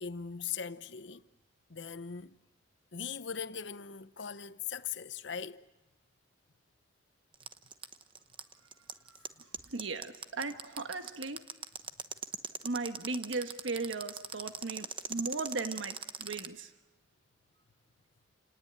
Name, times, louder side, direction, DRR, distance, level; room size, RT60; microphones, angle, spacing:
voice 1, 0.0-1.2 1.7-2.4 2.9-5.6, left 7 dB, 70° left, 0.8 m, -40 dB
sound 1, 7.3-16.5, right 7 dB, 25° right, 1.0 m, -39 dB
voice 2, 9.7-11.4 12.6-16.7, right 3 dB, 85° right, 1.3 m, -37 dB
29.5 x 19.0 x 8.7 m
head